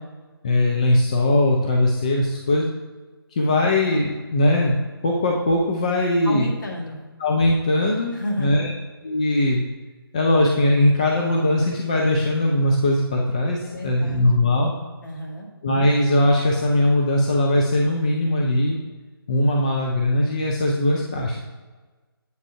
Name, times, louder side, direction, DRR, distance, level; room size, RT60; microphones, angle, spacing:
voice 1, 0.4-2.7 3.3-4.8 5.0-6.5 7.2-8.1 8.4-8.7 9.0-9.6 10.1-14.7 15.6-18.8 19.3-21.4, left 1 dB, 15° left, -1 dB, 0.4 m, -20 dB
voice 2, 6.2-7.0 8.1-8.8 13.6-14.3 15.0-15.5, equal, 50° left, -1 dB, 1.8 m, -31 dB
8.1 x 4.9 x 4.5 m, 1.3 s
figure-of-eight pair, 150°, 13 cm